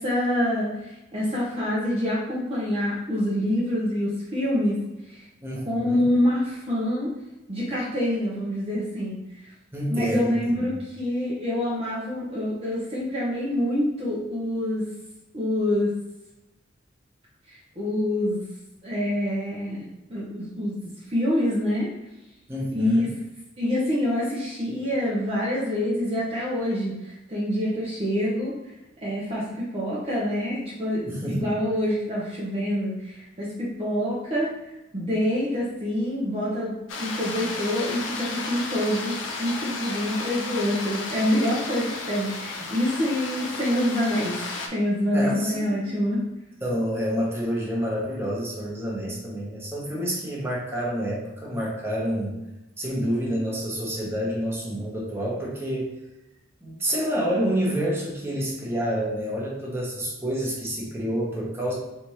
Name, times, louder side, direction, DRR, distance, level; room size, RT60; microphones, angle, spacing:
voice 1, 0.0-4.8 5.1-5.2 5.6-7.1 7.5-9.2 9.9-14.9 15.3-15.9 17.5-18.4 18.8-20.8 21.1-21.9 22.7-23.1 23.6-28.5 29.0-34.5 34.9-44.4 44.7-46.2, left 1 dB, 30° right, -7 dB, 0.8 m, -26 dB
voice 2, 5.4-6.0 9.7-10.7 22.5-23.1 31.0-31.5 45.1-45.8 46.6-52.3 52.8-55.9 56.6-61.7, equal, 15° right, -5 dB, 1.1 m, -28 dB
sound 1, 36.9-44.7, left 3 dB, 80° left, 0.7 m, -33 dB
4.2 x 3.4 x 3.1 m, 0.97 s
head